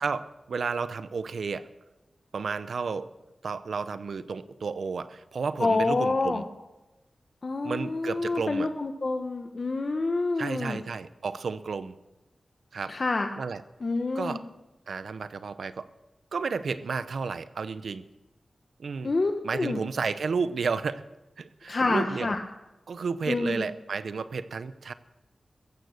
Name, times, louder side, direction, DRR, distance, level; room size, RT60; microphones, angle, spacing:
voice 1, 0.0-1.7 2.3-3.1 3.4-6.4 7.6-8.7 10.4-12.0 12.7-12.9 13.4-13.6 14.1-14.4 14.9-15.9 16.3-18.0 18.8-19.1 19.4-21.0 21.4-22.4 22.9-24.9, right 5 dB, 80° right, 13 dB, 0.7 m, -32 dB
voice 2, 5.6-6.4 7.4-10.8 12.9-13.3 13.8-14.4 19.0-19.8 21.7-22.4 23.3-23.6, left 3 dB, 45° left, 4 dB, 1.1 m, -27 dB
15.0 x 14.5 x 6.5 m, 1.0 s
wide cardioid pair, 115°, 0 cm